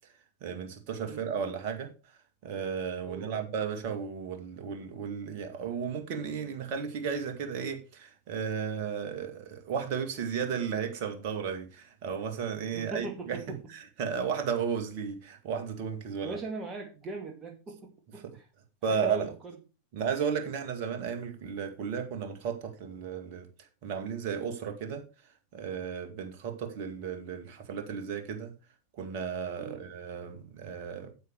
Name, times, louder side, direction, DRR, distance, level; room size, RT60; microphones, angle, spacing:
voice 1, 0.4-1.9 2.4-13.6 14.0-16.4 18.8-19.3 19.9-23.5 23.8-25.0 25.5-28.5 28.9-31.1, right 7 dB, 45° right, 2.2 m, -34 dB
voice 2, 3.0-3.5 12.7-13.7 16.2-18.5 18.9-19.6 29.6-29.8, right 3 dB, 20° right, 2.0 m, -40 dB
9.2 x 8.2 x 4.7 m
figure-of-eight pair, 90°, 0 cm